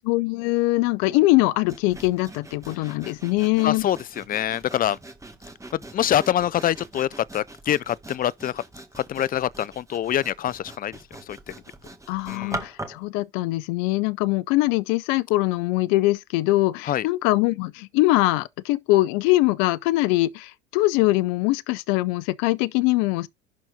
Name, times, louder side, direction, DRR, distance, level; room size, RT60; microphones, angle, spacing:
voice 1, 0.1-3.9 12.1-23.3, left 19 dB, 60° left, 0.8 m, -22 dB
Sawing, 1.7-13.1, right 2 dB, 10° right, 2.0 m, -42 dB
voice 2, 3.6-5.0 5.7-8.6 9.0-11.0 11.3-11.4 12.3-12.6 16.9-17.1, left 11 dB, 30° left, 0.5 m, -25 dB
11.5 x 4.2 x 3.7 m
hypercardioid pair, 75°, 32 cm